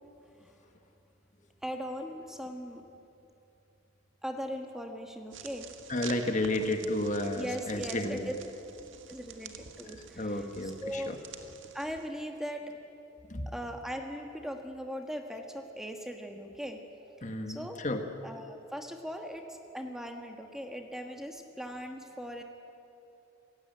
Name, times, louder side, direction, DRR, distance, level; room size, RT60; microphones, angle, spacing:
voice 1, 1.6-2.8 4.2-5.7 7.4-8.3 9.1-10.3 10.8-11.2 11.7-12.8 13.5-16.8 17.5-17.8 18.2-22.4, equal, ahead, 3 dB, 1.5 m, -39 dB
sound 1, 5.3-12.1, right 6 dB, 70° right, 1.7 m, -48 dB
voice 2, 5.9-8.3 9.8-11.2 13.3-13.5 17.2-18.0, left 1 dB, 40° left, 6 dB, 1.6 m, -32 dB
28.0 x 16.5 x 9.1 m, 2.8 s
head